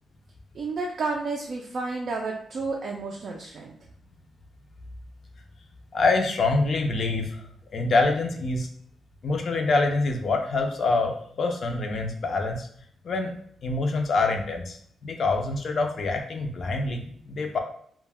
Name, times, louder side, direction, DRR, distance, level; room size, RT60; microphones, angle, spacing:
voice 1, 0.5-3.8, right 3 dB, 45° right, 0 dB, 0.3 m, -31 dB
voice 2, 5.9-7.4 7.7-8.7 9.2-12.7 13.0-13.3 13.6-14.8 15.0-17.6, left 3 dB, 45° left, 3 dB, 0.4 m, -25 dB
2.2 x 2.1 x 3.3 m, 0.63 s
wide cardioid pair, 155°, 0 cm